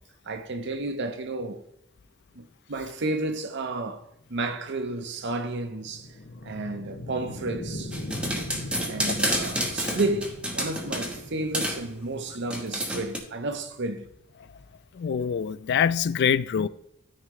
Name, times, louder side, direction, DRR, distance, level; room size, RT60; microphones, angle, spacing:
voice 1, 0.2-1.6 2.3-4.0 4.3-6.1 6.4-8.0 8.9-14.1, right 2 dB, 55° right, 0.8 m, -31 dB
sound 1, 4.2-14.9, left 1 dB, 80° left, 2.1 m, -41 dB
sound 2, 7.9-11.2 11.5-11.8 12.5-13.2, equal, 5° right, 1.2 m, -29 dB
voice 2, 15.0-16.7, left 7 dB, 55° left, 0.3 m, -24 dB
13.0 x 4.7 x 3.1 m
head